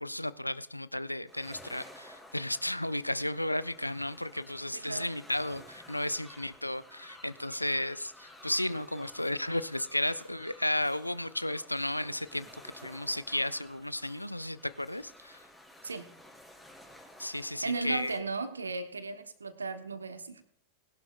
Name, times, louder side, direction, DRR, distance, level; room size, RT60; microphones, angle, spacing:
voice 1, 0.0-12.5 12.8-15.4 17.2-18.2, left 1 dB, 85° left, 17 dB, 0.4 m, -33 dB
sound 1, 1.3-18.2, left 1 dB, 5° left, 3.7 m, -54 dB
voice 2, 4.7-5.1 15.8-16.1 17.6-20.4, right 4 dB, 75° right, 10 dB, 1.3 m, -36 dB
20.0 x 11.5 x 2.5 m, 0.74 s
figure-of-eight pair, 90°, 0 cm